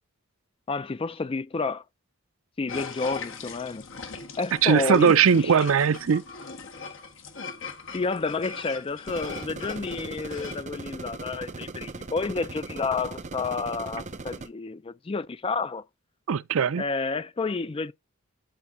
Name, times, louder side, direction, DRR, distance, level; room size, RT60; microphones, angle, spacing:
voice 1, 0.7-1.8 2.6-3.9 4.4-5.6 7.9-15.8 16.8-17.9, left 4 dB, 25° left, 0.4 m, -30 dB
sound 1, 2.7-10.6, left 5 dB, 60° left, 1.5 m, -40 dB
voice 2, 4.6-6.2 16.3-16.8, right 7 dB, 70° right, 0.4 m, -20 dB
sound 2, 9.1-14.5, right 3 dB, 35° right, 0.6 m, -39 dB
10.5 x 5.4 x 2.7 m
head